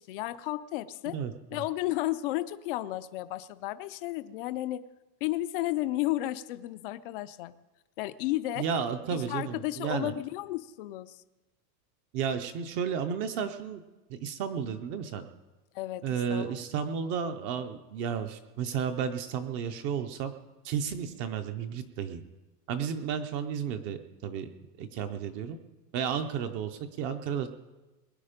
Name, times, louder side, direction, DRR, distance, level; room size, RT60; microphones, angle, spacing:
voice 1, 0.0-1.2 1.5-4.8 5.2-7.5 8.0-8.6 9.1-11.2 15.7-16.6, left 16 dB, 35° left, 14 dB, 0.4 m, -33 dB
voice 2, 1.1-1.6 8.6-10.1 12.1-13.8 14.1-15.3 16.0-20.3 20.6-22.2 22.7-24.5 24.8-25.6 25.9-27.5, right 7 dB, 25° right, 9 dB, 0.5 m, -32 dB
21.0 x 9.5 x 5.1 m, 1.1 s
supercardioid pair, 165°, 49 cm